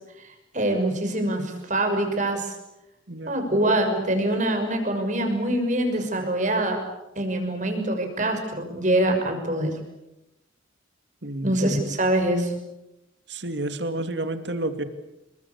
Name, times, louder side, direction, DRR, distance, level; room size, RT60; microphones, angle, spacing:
voice 1, 0.5-2.5 3.2-6.8 7.2-9.7 11.4-12.5, right 1 dB, 40° right, 5 dB, 6.2 m, -24 dB
voice 2, 11.2-11.5 13.3-14.8, right 1 dB, 60° right, 9 dB, 2.6 m, -30 dB
28.0 x 23.0 x 8.6 m, 0.91 s
head